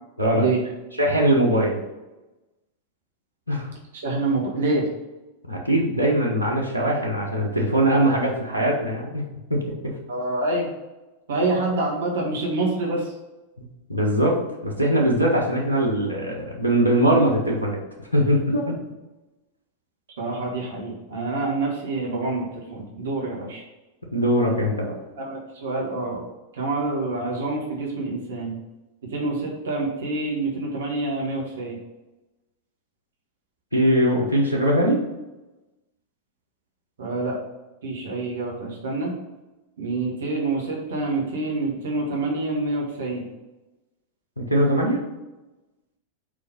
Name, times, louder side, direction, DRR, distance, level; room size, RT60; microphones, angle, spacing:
voice 1, 0.3-0.6 3.9-4.9 10.1-10.7 11.3-13.1 20.2-23.6 25.2-26.2 26.5-28.6 29.0-31.8 37.0-37.4 37.8-39.1 39.8-43.3, right 2 dB, 60° right, -3 dB, 1.8 m, -27 dB
voice 2, 1.0-1.8 3.5-3.7 5.5-9.2 9.5-10.0 13.9-14.4 14.6-17.8 18.1-18.7 24.1-24.9 33.7-35.0 44.4-45.0, right 1 dB, 85° left, -2 dB, 1.2 m, -21 dB
5.1 x 4.6 x 5.6 m, 1.1 s
figure-of-eight pair, 90°, 0 cm